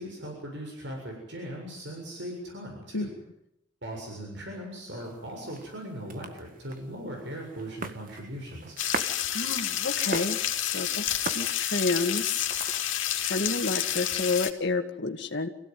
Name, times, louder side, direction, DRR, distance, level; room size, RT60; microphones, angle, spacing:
voice 1, 0.0-3.1 3.8-8.8, equal, 65° right, 0 dB, 7.3 m, -39 dB
sound 1, 5.0-13.1, right 4 dB, 45° right, 1.8 m, -41 dB
sound 2, 8.8-14.5, left 11 dB, 90° left, 2.8 m, -29 dB
voice 2, 9.3-12.5 13.2-15.5, left 3 dB, 60° left, 5 dB, 2.2 m, -30 dB
27.0 x 16.5 x 9.5 m, 0.81 s
head